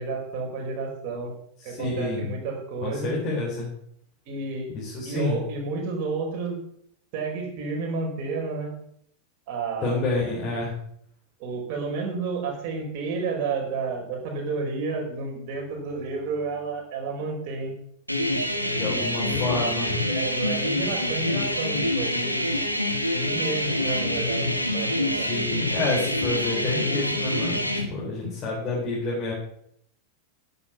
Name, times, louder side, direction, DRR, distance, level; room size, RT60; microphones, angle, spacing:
voice 1, 0.0-1.3 1.6-3.2 4.3-4.7 5.0-6.6 7.1-8.7 9.5-10.1 11.4-17.7 18.8-19.6 20.1-22.5 23.1-25.3, right 4 dB, 45° right, 0 dB, 4.9 m, -31 dB
voice 2, 1.6-2.3 2.8-3.7 4.7-5.4 9.8-10.7 18.7-20.0 25.1-29.3, left 2 dB, 30° left, -5 dB, 4.2 m, -28 dB
sound 1, 18.1-27.9, left 1 dB, 90° left, 1.3 m, -26 dB
11.0 x 8.7 x 6.9 m, 0.70 s
figure-of-eight pair, 90°, 0 cm